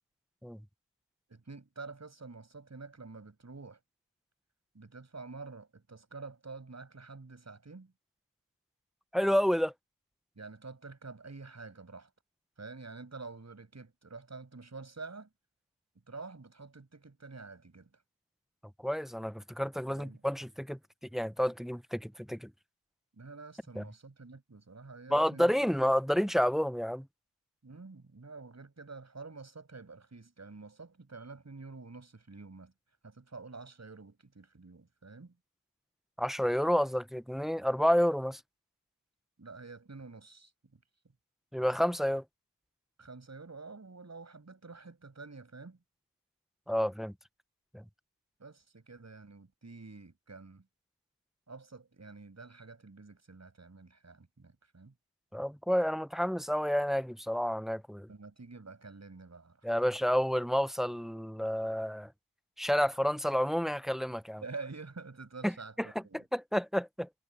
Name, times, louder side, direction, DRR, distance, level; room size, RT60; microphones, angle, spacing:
voice 1, 1.3-3.8 4.7-7.9 10.4-12.1 12.6-15.3 16.1-17.9 19.9-20.2 23.2-25.6 27.6-32.7 33.0-35.3 39.4-40.5 43.0-45.8 48.4-50.7 51.5-54.9 58.1-59.9 64.4-66.2, right 3 dB, 50° right, 6.9 m, -48 dB
voice 2, 9.1-9.7 18.8-20.8 21.1-22.5 23.8-23.9 25.1-27.1 36.2-38.4 41.5-42.2 46.7-47.1 47.7-47.8 55.3-58.1 59.6-62.1 62.6-64.4 65.4-65.5 65.8-65.9 66.1-67.1, equal, ahead, 0.7 m, -30 dB
wide cardioid pair, 65°, 35 cm